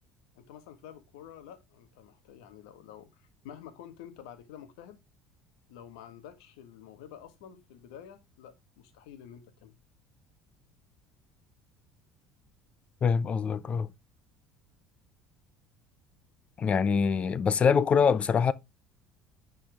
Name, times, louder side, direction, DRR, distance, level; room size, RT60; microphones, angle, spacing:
voice 1, 0.3-5.0 5.7-9.7, left 9 dB, 75° left, 1.6 m, -49 dB
voice 2, 13.0-13.9 16.6-18.5, left 6 dB, 40° left, 0.6 m, -24 dB
10.0 x 4.4 x 3.4 m
hypercardioid pair, 70°, 3 cm